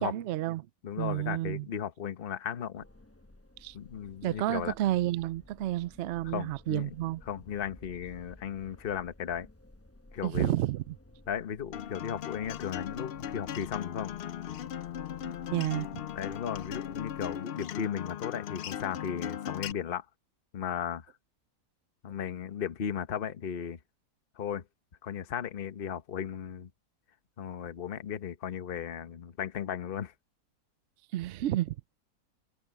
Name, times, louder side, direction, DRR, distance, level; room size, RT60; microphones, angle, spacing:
voice 1, 0.0-0.7 1.0-1.7 3.6-3.8 4.2-7.2 10.2-11.0 15.2-15.9 31.1-31.7, right 14 dB, 70° right, 0.7 m, -31 dB
voice 2, 0.8-2.8 3.7-4.7 6.3-6.9 7.3-9.5 10.1-10.5 11.3-14.1 16.1-20.0 20.5-21.1 22.0-23.8 24.4-24.6 25.0-26.7 27.4-30.1, left 8 dB, 40° left, 1.0 m, -36 dB
sound 1, 2.7-17.4, left 1 dB, 10° left, 0.8 m, -55 dB
Acoustic guitar, 11.7-19.7, left 10 dB, 70° left, 0.5 m, -38 dB
omnidirectional pair, 1.6 m